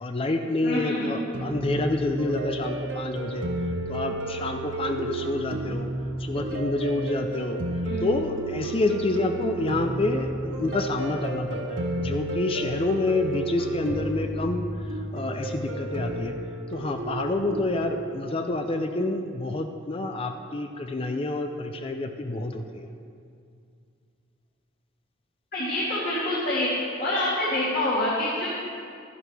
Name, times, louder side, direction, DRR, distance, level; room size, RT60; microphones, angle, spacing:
voice 1, 0.0-3.5 3.9-5.9 6.2-7.6 8.0-14.7 15.1-16.4 16.7-22.9, left 2 dB, 30° left, 6 dB, 0.4 m, -28 dB
voice 2, 0.6-1.2 7.8-8.1 25.5-26.7 27.0-28.5, left 1 dB, 45° left, -9 dB, 2.0 m, -26 dB
sound 1, 1.3-18.0, right 2 dB, 75° right, 1.1 m, -32 dB
12.5 x 11.0 x 3.4 m, 2.4 s
head